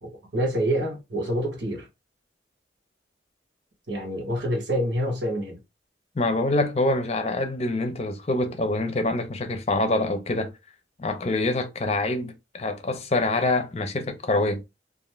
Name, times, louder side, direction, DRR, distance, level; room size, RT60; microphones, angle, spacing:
voice 1, 0.0-1.9 3.9-5.6, equal, 80° right, 1.1 m, -27 dB
voice 2, 6.2-10.5 11.0-14.6, left 2 dB, 35° left, 0.5 m, -25 dB
2.5 x 2.4 x 3.2 m
head